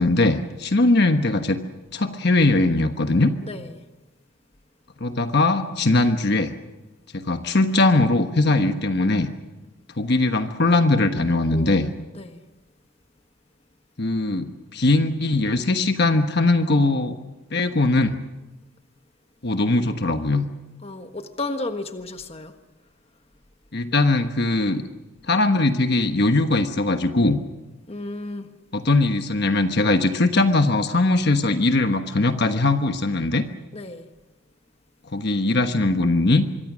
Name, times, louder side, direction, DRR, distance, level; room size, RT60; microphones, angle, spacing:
voice 1, 0.0-1.6 1.9-3.3 5.0-6.5 7.1-9.3 10.0-11.9 14.0-17.2 17.5-18.2 19.4-20.4 23.7-24.8 25.3-27.4 28.7-33.4 35.1-36.4, left 2 dB, 55° left, 7 dB, 1.3 m, -20 dB
voice 2, 3.4-3.8 11.5-12.4 20.8-22.5 27.9-28.5 33.7-34.1, left 2 dB, 30° left, 7 dB, 1.4 m, -33 dB
25.5 x 23.5 x 6.3 m, 1.1 s
head